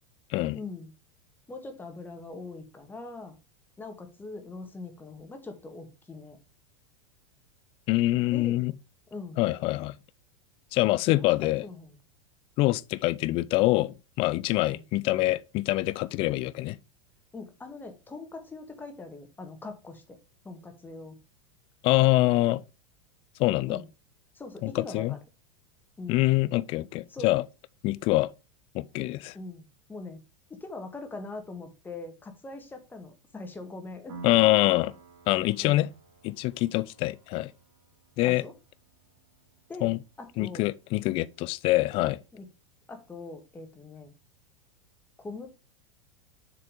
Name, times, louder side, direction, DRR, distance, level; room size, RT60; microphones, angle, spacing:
voice 1, 0.5-0.9 1.5-3.4 3.8-6.4 8.3-8.6 9.1-9.4 11.1-12.0 14.7-14.8 17.3-20.2 20.4-21.2 23.7-23.9 24.3-25.2 26.0-26.3 27.1-27.4 29.3-30.2 30.5-34.2 35.6-35.9 38.2-38.5 39.7-39.9 40.2-40.7 42.3-42.5 42.9-44.1 45.2-45.5, left 3 dB, 10° left, 1.7 m, -42 dB
voice 2, 7.9-8.7 9.4-9.9 10.7-11.6 12.6-16.8 21.8-22.6 23.4-23.8 24.6-25.2 26.1-27.4 27.8-28.3 28.7-29.3 34.2-34.9 35.3-35.9 36.2-37.5 38.2-38.4 39.8-40.0 40.4-42.2, left 18 dB, 35° left, 0.4 m, -25 dB
Piano, 34.1-41.5, right 4 dB, 50° right, 2.6 m, -51 dB
7.1 x 4.8 x 4.9 m
figure-of-eight pair, 90°, 16 cm